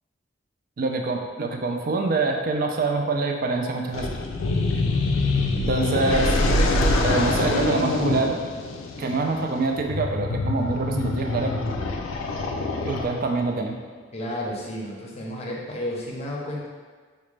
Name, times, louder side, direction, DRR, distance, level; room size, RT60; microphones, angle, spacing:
voice 1, 0.8-4.1 5.6-6.4 7.0-8.4 9.0-11.5 12.8-13.8, right 3 dB, 45° right, 3 dB, 0.4 m, -25 dB
sound 1, 3.9-13.4, left 2 dB, 85° left, 0.4 m, -25 dB
voice 2, 14.1-16.7, left 1 dB, 35° left, -3 dB, 0.6 m, -32 dB
4.8 x 2.1 x 3.2 m, 1.5 s
head